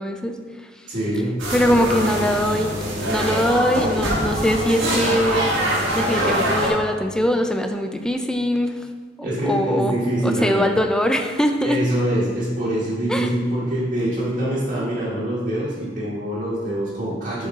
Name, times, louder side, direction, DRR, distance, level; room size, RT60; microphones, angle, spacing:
voice 1, 0.0-0.9 1.5-2.7 3.0-5.5 5.9-8.9 9.2-10.0 10.2-11.9 13.1-13.3, equal, 5° left, 5 dB, 0.3 m, -22 dB
voice 2, 0.9-1.4 9.2-10.6 11.6-17.5, right 1 dB, 45° right, -9 dB, 1.4 m, -24 dB
sound 1, 1.4-6.7, equal, 75° right, 1.5 m, -23 dB
6.4 x 4.6 x 3.7 m, 1.5 s
head